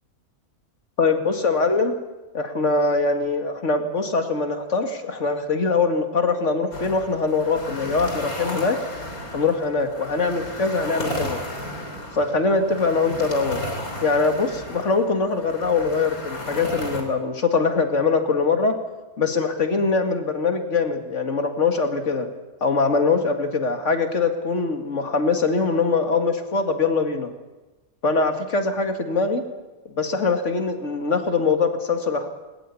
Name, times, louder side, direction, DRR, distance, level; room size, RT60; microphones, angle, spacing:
voice 1, 1.0-1.9 2.3-8.8 9.3-11.4 12.1-13.6 14.0-18.7 19.2-22.3 22.6-27.3 28.0-29.4 29.9-32.3, left 4 dB, 50° left, 6 dB, 2.4 m, -22 dB
sound 1, 6.7-17.0, left 1 dB, 70° left, 4.0 m, -34 dB
21.0 x 20.0 x 8.5 m, 1.1 s
omnidirectional pair, 1.6 m